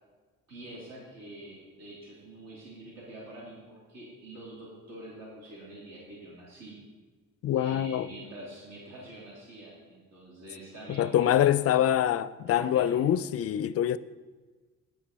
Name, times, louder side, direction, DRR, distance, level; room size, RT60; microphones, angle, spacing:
voice 1, 0.5-6.7 7.5-11.7 12.6-13.1, right 1 dB, 60° right, 3.0 m, -46 dB
voice 2, 7.4-8.1 10.9-14.0, left 11 dB, 50° left, 0.4 m, -25 dB
9.2 x 7.9 x 4.2 m
cardioid pair, 90°, 30 cm